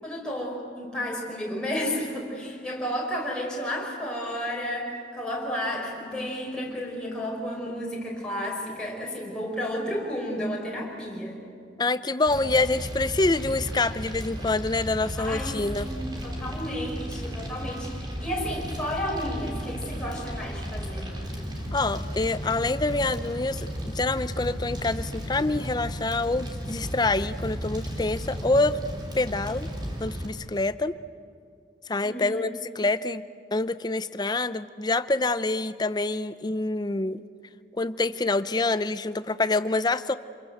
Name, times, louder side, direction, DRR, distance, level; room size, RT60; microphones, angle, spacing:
voice 1, 0.0-11.4 15.2-21.1 32.0-32.4, equal, 5° left, -4 dB, 5.5 m, -32 dB
voice 2, 11.8-15.9 21.7-28.8 29.1-29.7 30.0-31.0 31.9-33.2 33.5-37.2 37.8-40.1, left 2 dB, 25° left, 14 dB, 0.6 m, -26 dB
Fire, 12.3-30.3, equal, 25° right, 3.7 m, -34 dB
27.0 x 22.0 x 7.9 m, 2.4 s
head